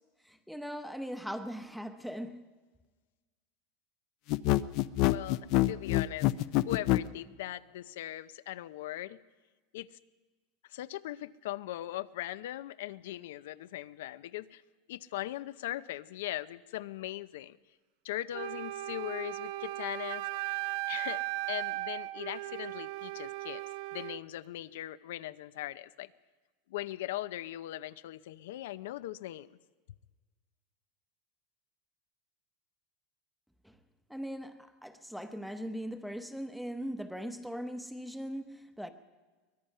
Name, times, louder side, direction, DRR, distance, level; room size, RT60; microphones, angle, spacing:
voice 1, 0.3-2.4 33.6-33.8 34.1-38.9, equal, ahead, 0.9 m, -40 dB
sound 1, 4.3-7.1, left 17 dB, 40° left, 0.5 m, -26 dB
voice 2, 5.0-6.3 6.6-9.2 9.7-9.9 10.7-14.6 14.9-17.6 18.0-20.2 20.9-21.2 21.5-23.6 23.9-26.1 26.7-29.5, left 14 dB, 75° left, 0.7 m, -39 dB
Wind instrument woodwind instrument, 18.3-24.2, right 18 dB, 50° right, 0.6 m, -37 dB
23.0 x 20.5 x 5.6 m
supercardioid pair, 175°, 0 cm